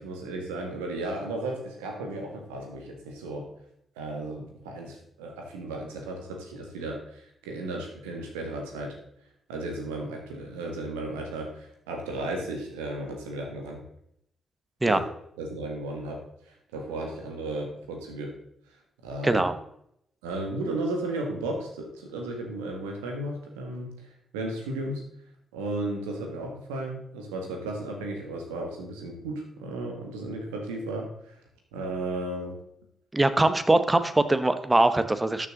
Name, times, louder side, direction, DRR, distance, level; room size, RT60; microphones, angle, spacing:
voice 1, 0.0-3.5 4.0-9.0 9.5-13.8 14.8-15.0 15.4-16.2 16.7-18.3 19.0-19.4 20.2-24.1 24.3-25.1 25.5-31.4 31.7-32.5, right 2 dB, 85° right, 2 dB, 1.9 m, -34 dB
voice 2, 33.1-35.5, right 2 dB, 20° right, 11 dB, 1.1 m, -22 dB
13.0 x 6.7 x 3.9 m, 0.73 s
hypercardioid pair, 40°, 0 cm